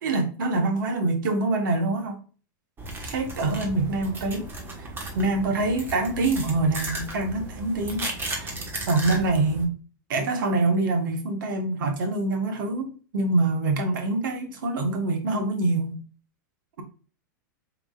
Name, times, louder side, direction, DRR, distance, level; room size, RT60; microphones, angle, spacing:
voice 1, 0.0-2.2 3.0-4.5 4.8-4.9 5.1-8.5 8.9-9.7 10.1-16.0, right 2 dB, 75° right, 1.3 m, -25 dB
sound 1, 2.8-9.6, right 1 dB, 20° right, 1.2 m, -35 dB
4.8 x 3.7 x 2.4 m
hypercardioid pair, 120°, 11 cm